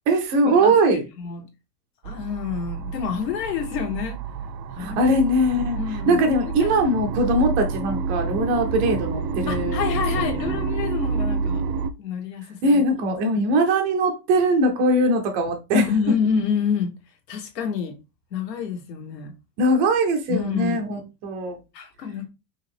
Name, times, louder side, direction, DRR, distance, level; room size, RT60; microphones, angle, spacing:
voice 1, 0.1-1.0 4.8-5.8 6.1-10.5 12.6-15.8 19.6-21.6, right 1 dB, 20° right, 0.4 m, -21 dB
voice 2, 2.0-4.2 4.7-5.1 5.8-6.2 6.6-6.9 9.5-11.6 12.0-12.8 15.7-16.9 17.3-18.0 18.3-19.3 20.3-20.8 21.7-22.3, left 7 dB, 80° left, 1.9 m, -27 dB
sound 1, 2.0-11.9, right 4 dB, 85° right, 0.8 m, -28 dB
5.3 x 2.9 x 3.4 m
supercardioid pair, 165°, 49 cm